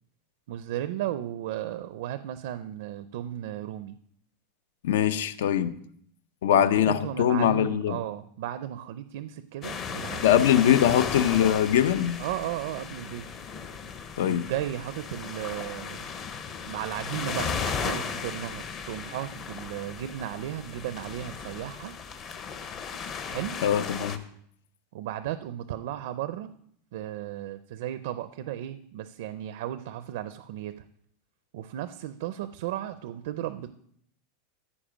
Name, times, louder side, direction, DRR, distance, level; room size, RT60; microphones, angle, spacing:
voice 1, 0.5-4.0 6.5-10.7 12.2-13.3 14.2-16.1 16.6-22.0 23.3-23.6 24.9-26.5 26.9-30.9 31.5-33.7, right 12 dB, 60° right, 0.4 m, -35 dB
voice 2, 4.8-5.7 6.4-8.0 10.2-12.2 14.2-14.4 23.6-24.2, left 10 dB, 80° left, 0.6 m, -22 dB
sound 1, 9.6-24.2, left 6 dB, 25° left, 0.6 m, -36 dB
14.0 x 4.9 x 5.0 m
supercardioid pair, 175°, 0 cm